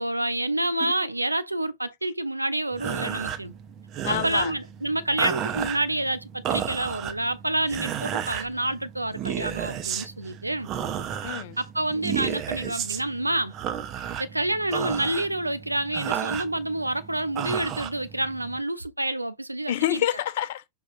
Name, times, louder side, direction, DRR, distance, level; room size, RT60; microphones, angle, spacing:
voice 1, 0.0-3.5 4.1-10.7 11.6-13.6 14.2-20.0, right 1 dB, 85° right, 0.3 m, -28 dB
sound 1, 2.7-18.6, right 9 dB, 35° right, 0.6 m, -33 dB
voice 2, 4.0-4.5 11.2-11.6 19.7-20.7, left 13 dB, 55° left, 0.4 m, -27 dB
5.1 x 2.3 x 2.6 m
figure-of-eight pair, 90°, 0 cm